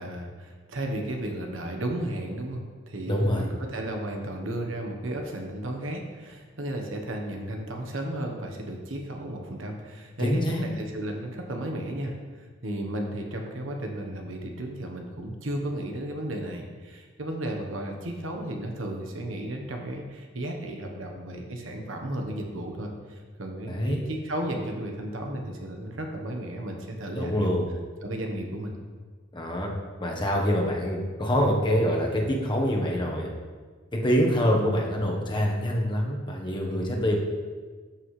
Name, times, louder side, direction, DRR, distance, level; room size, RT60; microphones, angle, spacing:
voice 1, 0.0-12.1 12.6-27.6 28.0-28.8 36.7-37.0, right 1 dB, 70° right, 2 dB, 1.2 m, -34 dB
voice 2, 3.1-3.5 10.2-10.6 23.6-24.0 27.1-27.7 29.3-29.7 30.0-33.3 33.9-37.2, equal, 25° left, -1 dB, 1.2 m, -25 dB
13.0 x 5.9 x 3.3 m, 1.5 s
head